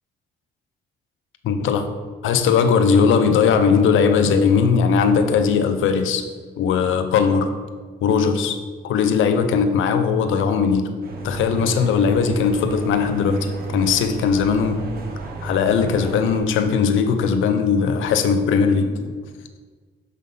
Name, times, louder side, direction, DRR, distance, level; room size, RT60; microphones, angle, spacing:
voice 1, 1.4-1.8 2.2-6.3 6.6-7.5 8.0-8.6 8.8-10.9 11.2-14.8 15.4-19.1, left 6 dB, 80° left, 8 dB, 0.7 m, -19 dB
sound 1, 11.0-16.4, right 3 dB, 50° right, 1.1 m, -31 dB
6.6 x 3.7 x 5.4 m, 1.5 s
cardioid pair, 90°, 20 cm